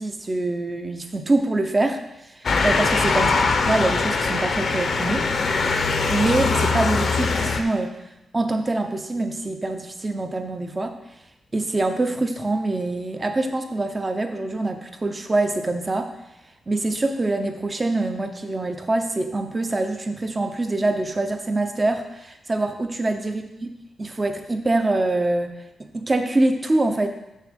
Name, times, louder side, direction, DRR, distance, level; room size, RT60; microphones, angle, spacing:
voice 1, 0.0-2.0 2.4-3.3 3.7-5.2 6.1-8.0 8.3-11.0 11.5-16.1 16.7-23.7 24.0-25.5 25.9-27.1, right 2 dB, 25° right, 6 dB, 0.8 m, -24 dB
Motor vehicle (road) / Siren, 2.4-7.6, left 4 dB, 55° left, 0.8 m, -22 dB
6.5 x 6.4 x 5.1 m, 0.92 s
wide cardioid pair, 130°, 0 cm